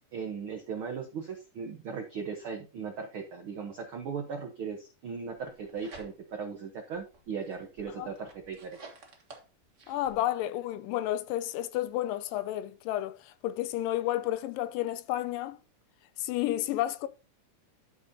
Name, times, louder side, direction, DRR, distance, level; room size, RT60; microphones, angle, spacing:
voice 1, 0.1-8.8, right 6 dB, 90° right, 1.1 m, -38 dB
sound 1, 5.4-6.5 6.9-10.2, right 3 dB, 50° right, 0.9 m, -52 dB
voice 2, 9.9-15.6 16.2-17.1, left 14 dB, 80° left, 2.2 m, -31 dB
12.0 x 6.7 x 2.7 m
omnidirectional pair, 4.0 m